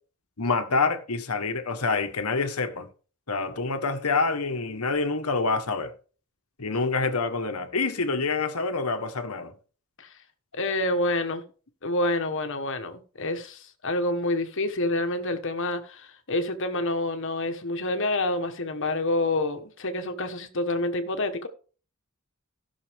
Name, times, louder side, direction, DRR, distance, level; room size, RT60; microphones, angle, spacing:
voice 1, 0.4-2.9 3.3-5.9 6.6-9.5, left 4 dB, 80° left, 1.4 m, -27 dB
voice 2, 10.5-11.4 11.8-21.5, left 2 dB, 60° left, 1.4 m, -28 dB
15.5 x 6.3 x 3.6 m
head